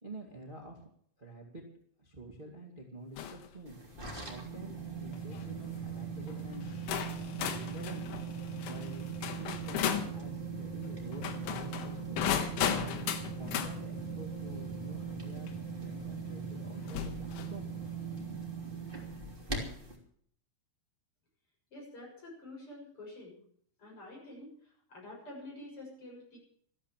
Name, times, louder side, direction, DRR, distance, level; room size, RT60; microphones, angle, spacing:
voice 1, 0.0-0.8 1.2-1.6 2.0-3.8 4.2-6.6 7.5-8.1 8.7-9.0 9.4-12.9 13.4-15.5 15.8-17.7, right 2 dB, 40° right, -1 dB, 0.7 m, -48 dB
sound 1, 3.2-3.5 4.0-4.3 5.1-5.4 6.3-6.4 6.9-10.1 11.1-13.7 15.5-15.6 16.9-17.6, left 9 dB, 90° left, 3.9 m, -35 dB
sound 2, 3.7-19.9, right 5 dB, 15° right, 2.1 m, -40 dB
sound 3, 6.1-18.3, left 2 dB, 65° left, 4.2 m, -54 dB
voice 2, 21.7-23.4 23.8-26.4, left 1 dB, 25° left, -2 dB, 7.7 m, -48 dB
14.0 x 13.0 x 7.4 m, 0.62 s
omnidirectional pair, 5.4 m